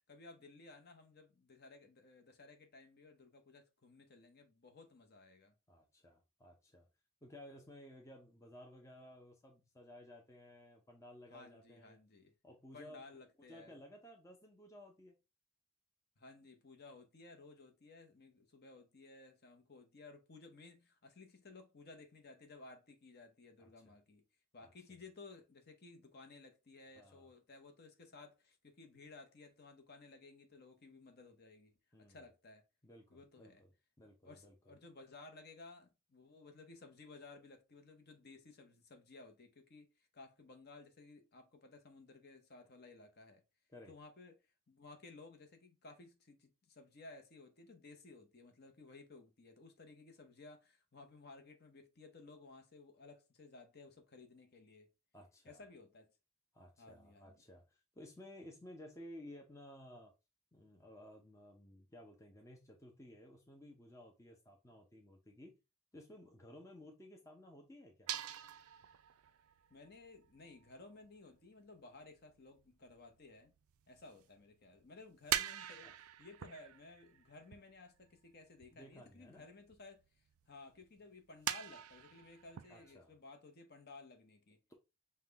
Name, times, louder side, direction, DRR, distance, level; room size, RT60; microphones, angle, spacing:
voice 1, 0.1-5.5 11.3-12.3 12.7-13.8 16.2-24.2 24.5-31.7 32.0-32.6 33.1-33.6 34.2-43.4 43.9-54.9 55.4-56.1 56.8-57.4 69.7-73.5 73.9-84.6, left 3 dB, 45° left, 0.8 m, -57 dB
voice 2, 5.7-6.9 7.2-12.0 12.4-13.0 13.5-15.2 23.6-23.7 24.6-24.7 26.9-27.3 31.9-32.2 32.8-33.7 34.0-34.5 43.7-43.9 55.1-55.6 56.5-60.1 60.5-65.6 65.9-68.1 75.8-75.9 78.7-79.5 82.7-83.1, left 1 dB, 15° left, 0.6 m, -56 dB
sound 1, 68.1-71.4 72.4-72.9 73.2-74.5 74.8-80.1 80.4-80.5 80.8-81.0 81.5-82.9, right 11 dB, 80° right, 0.4 m, -43 dB
5.7 x 2.2 x 3.4 m
head